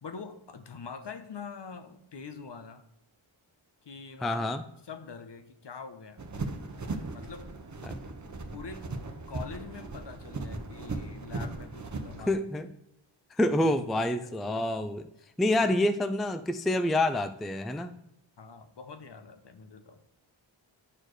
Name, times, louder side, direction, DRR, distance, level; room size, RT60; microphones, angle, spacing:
voice 1, 0.0-2.8 3.8-6.2 6.8-7.5 8.5-8.9 9.3-12.3 13.6-14.7 15.2-15.8 18.4-20.0, left 5 dB, 60° left, 8 dB, 0.9 m, -45 dB
voice 2, 4.2-4.6 7.8-8.0 12.3-12.7 13.4-15.0 15.4-18.0, left 1 dB, ahead, 10 dB, 0.3 m, -27 dB
sound 1, 6.2-12.3, right 3 dB, 35° right, 0.8 m, -38 dB
9.8 x 4.4 x 3.1 m, 0.83 s
cardioid pair, 45°, 48 cm